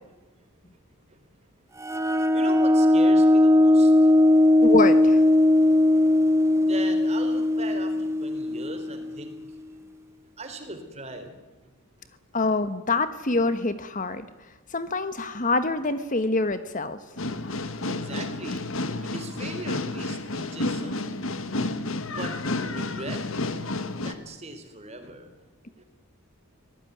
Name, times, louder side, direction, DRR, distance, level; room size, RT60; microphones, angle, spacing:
sound 1, 1.8-9.2, left 1 dB, 15° right, 1.1 m, -19 dB
voice 1, 2.3-4.4 5.7-5.8 6.6-9.8 10.4-11.4 17.9-21.0 22.0-22.3 22.6-23.2 23.9-25.3 25.8-25.9, right 2 dB, 30° right, 7 dB, 3.9 m, -40 dB
voice 2, 4.6-5.2 12.3-14.2 14.7-17.0, left 3 dB, 35° left, 11 dB, 1.2 m, -25 dB
sound 2, 17.2-24.1, left 2 dB, 65° left, 1.6 m, -31 dB
25.0 x 18.5 x 9.5 m, 1.1 s
head